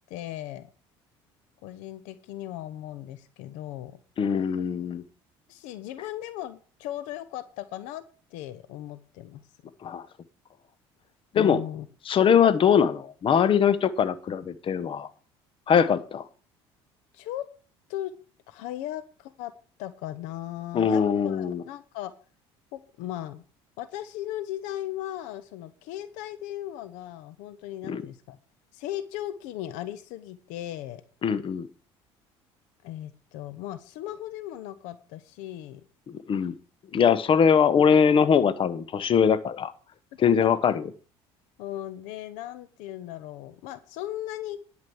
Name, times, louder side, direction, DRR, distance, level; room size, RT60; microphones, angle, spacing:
voice 1, 0.1-0.7 1.6-4.0 5.5-8.0 8.3-9.4 11.3-11.9 17.1-17.5 17.9-18.1 18.5-19.5 19.8-22.1 22.7-23.4 23.8-28.4 28.7-31.0 32.8-35.8 41.6-44.6, left 13 dB, 80° left, 13 dB, 0.9 m, -37 dB
voice 2, 4.2-5.0 9.8-10.0 11.3-11.6 12.1-15.1 15.7-16.2 20.7-21.6 27.9-28.0 31.2-31.7 36.1-36.5 36.9-39.7 40.2-40.8, left 7 dB, 45° left, 15 dB, 1.1 m, -22 dB
11.0 x 5.2 x 7.9 m, 0.39 s
supercardioid pair, 80°, 13 cm